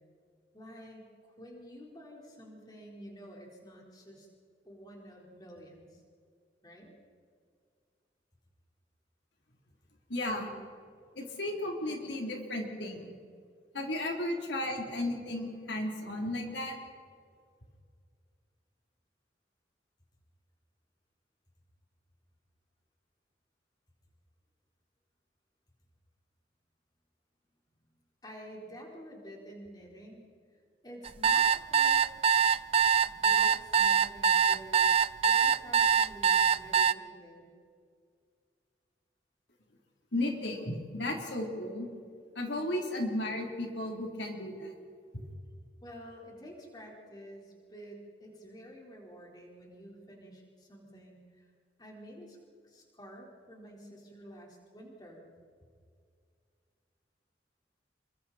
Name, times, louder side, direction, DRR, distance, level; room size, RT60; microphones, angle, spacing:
voice 1, 0.5-4.3 4.6-6.0 6.6-7.0 28.2-30.3 30.8-32.0 33.0-34.8 35.2-37.5 45.8-51.5 51.8-52.4 52.6-55.3, equal, 20° left, -1 dB, 4.4 m, -50 dB
voice 2, 10.1-10.5 11.2-13.1 13.7-16.8 40.1-41.9 42.4-44.7, left 1 dB, 80° left, 1 dB, 3.6 m, -34 dB
sound 1, 31.0-36.9, right 7 dB, 35° right, 0.5 m, -23 dB
28.5 x 24.0 x 4.3 m, 2.1 s
head